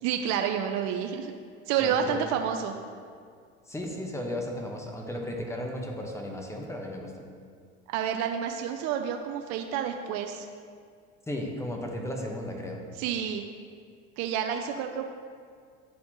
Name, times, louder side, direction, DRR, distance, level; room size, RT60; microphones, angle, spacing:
voice 1, 0.0-1.3 1.7-2.8 7.9-10.5 13.0-13.5 14.2-15.1, right 8 dB, 55° right, 5 dB, 0.5 m, -29 dB
voice 2, 1.8-2.2 3.7-7.1 11.3-12.8, left 1 dB, 10° left, 1 dB, 1.1 m, -35 dB
10.5 x 4.2 x 2.9 m, 2.1 s
hypercardioid pair, 80°, 33 cm